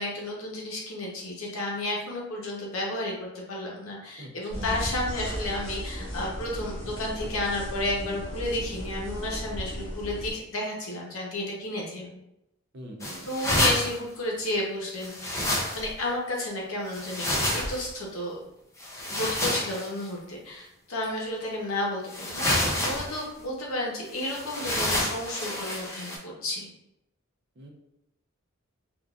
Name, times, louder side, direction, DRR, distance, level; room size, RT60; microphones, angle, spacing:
voice 1, 0.0-12.1 13.2-18.4 19.1-26.7, left 1 dB, 80° left, -2 dB, 0.9 m, -32 dB
voice 2, 4.2-4.7 12.7-13.3 27.6-27.7, equal, 55° right, 2 dB, 0.5 m, -44 dB
sound 1, 4.5-10.3, equal, 65° left, 1.2 m, -36 dB
sound 2, 13.0-14.0 15.0-16.0 16.9-17.8 18.8-19.9 21.0-21.1 22.1-23.2 24.2-26.2, left 1 dB, 15° left, 0.5 m, -28 dB
3.7 x 2.3 x 2.3 m, 0.85 s
head